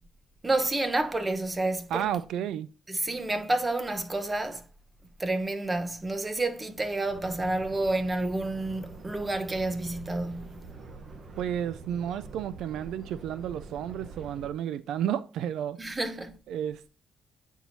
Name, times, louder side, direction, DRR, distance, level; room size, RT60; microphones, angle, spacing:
voice 1, 0.4-2.1 2.9-4.6 5.2-10.6 15.8-16.4, right 2 dB, 20° right, 0.9 m, -29 dB
voice 2, 1.9-2.7 11.4-15.8 16.5-16.9, right 10 dB, 80° right, 0.3 m, -32 dB
sound 1, 7.1-14.5, right 4 dB, 45° right, 1.1 m, -45 dB
9.1 x 4.5 x 2.7 m
cardioid pair, 90°, 0 cm